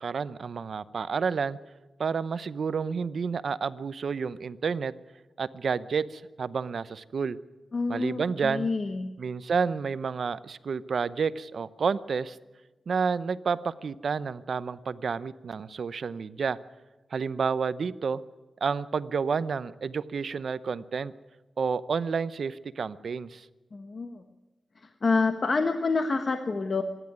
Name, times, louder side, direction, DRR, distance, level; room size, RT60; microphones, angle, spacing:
voice 1, 0.0-1.6 2.0-4.9 5.4-7.4 7.9-8.7 9.2-12.4 12.9-16.6 17.1-18.2 18.6-21.1 21.6-23.5, right 5 dB, 70° right, 15 dB, 0.8 m, -30 dB
voice 2, 7.7-9.1 23.7-24.2 24.8-26.8, left 4 dB, 50° left, 7 dB, 1.3 m, -28 dB
26.0 x 11.0 x 9.5 m, 1.2 s
cardioid pair, 80°, 0 cm